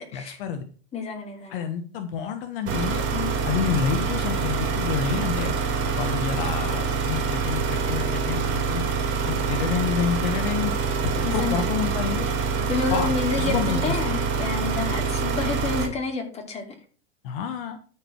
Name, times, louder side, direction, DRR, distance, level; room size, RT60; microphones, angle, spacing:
voice 1, 0.1-0.6 1.5-3.0 3.4-5.6 5.8-8.9 9.3-10.7 11.1-12.3 12.9-14.0 17.2-17.8, left 7 dB, 55° left, 7 dB, 1.3 m, -28 dB
voice 2, 0.9-1.6 3.1-3.3 11.2-11.6 12.7-16.7, left 4 dB, 20° left, 2 dB, 2.8 m, -29 dB
sound 1, 2.7-15.9, right 5 dB, 35° right, 3.2 m, -26 dB
13.0 x 5.2 x 4.6 m, 0.41 s
hypercardioid pair, 130°, 32 cm